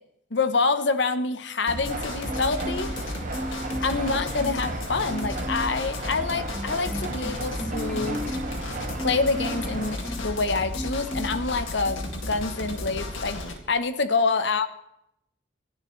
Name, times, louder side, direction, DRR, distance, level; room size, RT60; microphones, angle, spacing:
voice 1, 0.3-3.2 3.8-8.2 9.0-14.7, left 4 dB, 65° left, 11 dB, 0.9 m, -27 dB
sound 1, 1.7-13.5, left 1 dB, 90° left, 2.1 m, -34 dB
sound 2, 1.7-10.0, right 3 dB, 40° right, 1.6 m, -36 dB
Marimba xylophone, 2.3-3.0 3.3-4.8 5.1-5.8 6.2-10.4 10.7-11.5 11.8-12.0, equal, ahead, 0.9 m, -36 dB
27.0 x 11.0 x 3.2 m, 0.81 s
head